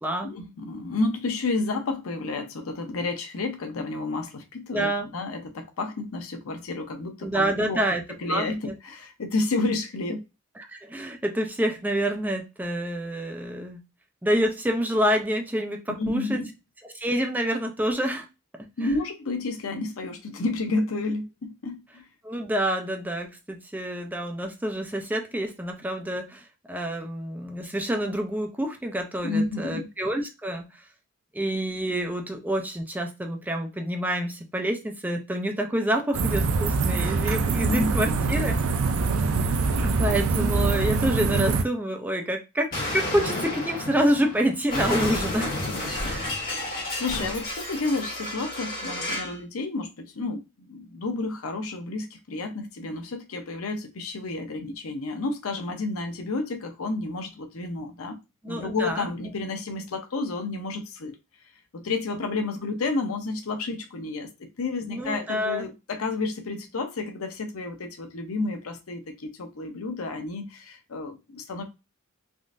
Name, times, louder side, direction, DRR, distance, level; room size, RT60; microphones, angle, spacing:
voice 1, 0.2-7.8 8.2-10.2 16.0-16.5 18.8-22.0 29.2-29.9 37.6-38.3 45.6-58.2 58.4-61.1 61.7-64.3 64.6-71.6, left 3 dB, 75° left, 0.7 m, -31 dB
voice 2, 4.7-5.1 7.2-8.0 8.3-8.7 10.7-13.8 14.2-16.4 16.8-18.3 18.8-18.9 22.2-30.7 31.3-38.6 39.8-45.5 46.0-46.4 47.2-47.3 58.4-59.1 64.9-65.7, right 1 dB, 10° right, 0.4 m, -27 dB
sound 1, 36.1-41.6, right 4 dB, 70° right, 0.4 m, -24 dB
Explosion, 42.7-49.4, left 1 dB, 45° left, 1.6 m, -31 dB
3.7 x 2.5 x 2.5 m
head